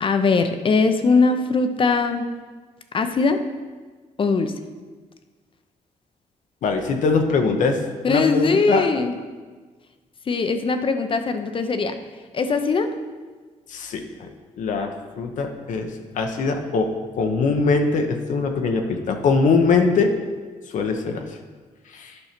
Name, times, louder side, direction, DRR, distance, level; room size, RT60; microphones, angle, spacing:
voice 1, 0.0-2.3 2.9-3.4 4.2-4.5 8.0-9.2 10.3-11.9 12.3-12.9, left 4 dB, 40° left, 8 dB, 0.7 m, -20 dB
voice 2, 6.6-7.8 8.1-8.8 13.7-14.3 14.6-15.9 16.1-20.1 20.7-21.3 21.9-22.2, left 4 dB, 75° left, 4 dB, 0.9 m, -22 dB
9.8 x 5.5 x 4.4 m, 1.4 s
cardioid pair, 90°, 13 cm